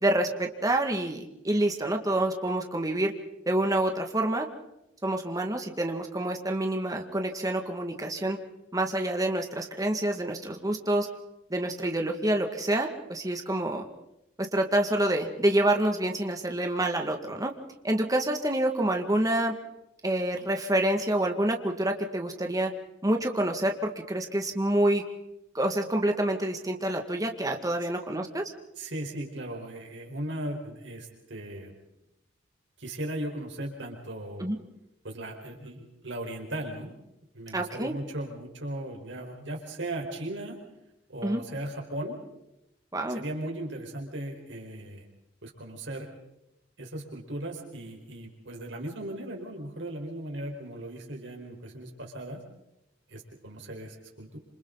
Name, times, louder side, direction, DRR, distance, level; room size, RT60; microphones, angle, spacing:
voice 1, 0.0-3.1 3.5-4.5 5.0-8.4 8.7-11.1 11.5-13.8 14.4-17.5 17.8-19.5 20.0-22.7 23.0-25.0 25.5-28.5 34.4-34.6 37.5-38.0 41.2-41.4 42.9-43.2, right 1 dB, 20° right, 3 dB, 2.0 m, -27 dB
voice 2, 28.8-31.7 32.8-34.5 35.0-36.9 37.3-40.6 41.1-42.2 43.1-45.0 45.4-46.1 46.8-52.4 53.1-54.4, right 1 dB, 70° right, 1 dB, 4.7 m, -37 dB
28.0 x 27.0 x 4.0 m, 0.88 s
head